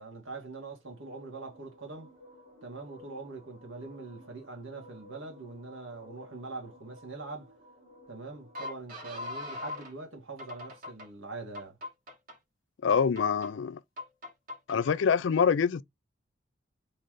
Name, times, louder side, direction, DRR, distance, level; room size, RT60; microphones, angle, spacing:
voice 1, 0.0-2.1 2.6-7.5 8.1-11.8, right 3 dB, 75° right, 2.0 m, -43 dB
sound 1, 0.9-9.9 10.4-11.1 11.5-12.4 12.9-13.5 14.0-14.8, left 2 dB, 45° right, 1.4 m, -45 dB
voice 2, 12.8-13.8 14.7-15.8, left 6 dB, 65° left, 0.4 m, -25 dB
3.8 x 3.2 x 3.7 m
head